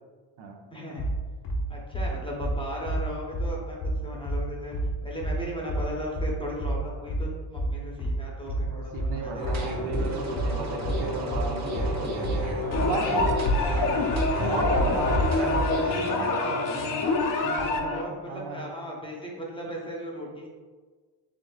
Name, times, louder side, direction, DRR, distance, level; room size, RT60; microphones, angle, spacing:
voice 1, 0.7-1.1 1.7-4.8 5.0-9.7 13.6-14.1 14.5-14.7 17.9-20.5, equal, 10° left, -2 dB, 0.7 m, -37 dB
sound 1, 1.0-15.8, right 1 dB, 80° left, 0.9 m, -29 dB
voice 2, 8.7-12.5 12.8-13.4 14.4-17.1 17.4-18.7, right 3 dB, 70° right, 1 dB, 0.8 m, -35 dB
sound 2, 9.4-17.7, equal, 40° right, 0.9 m, -33 dB
sound 3, 12.7-18.0, left 3 dB, 50° left, 0.6 m, -26 dB
4.8 x 3.7 x 2.3 m, 1.5 s
cardioid pair, 125°, 42 cm